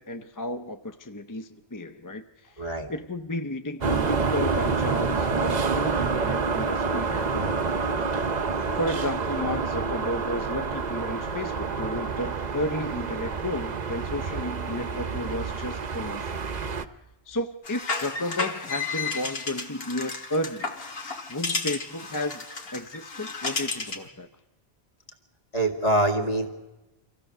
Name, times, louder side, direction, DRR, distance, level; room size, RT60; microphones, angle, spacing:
voice 1, 0.0-7.9 8.7-16.9 17.3-20.8 21.3-22.4 22.7-24.3, left 1 dB, 25° left, 8 dB, 0.5 m, -33 dB
voice 2, 2.6-2.9 8.4-8.8 25.5-26.5, right 1 dB, 40° left, 4 dB, 2.2 m, -25 dB
sound 1, 3.8-16.8, right 4 dB, 45° right, 0.8 m, -28 dB
sound 2, 17.6-24.1, left 3 dB, 70° left, 1.9 m, -32 dB
25.5 x 15.5 x 6.6 m, 1.1 s
omnidirectional pair, 1.0 m